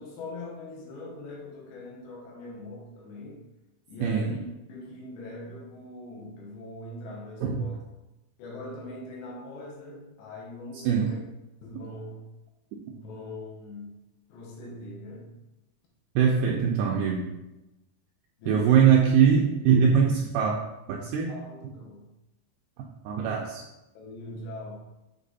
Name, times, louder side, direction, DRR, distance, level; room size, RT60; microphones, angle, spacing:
voice 1, 0.0-3.4 3.9-4.4 4.7-7.8 8.4-11.2 11.6-12.2 12.9-14.0 14.3-15.3 18.4-18.8 21.3-22.1 24.0-24.8, left 2 dB, 75° left, -2 dB, 3.4 m, -41 dB
voice 2, 4.0-4.4 7.4-7.7 10.9-11.1 12.7-12.8 16.2-17.3 18.5-20.5 20.9-21.3 23.1-23.6, right 7 dB, 85° right, -1 dB, 2.3 m, -22 dB
8.4 x 3.3 x 4.1 m, 0.97 s
omnidirectional pair, 5.0 m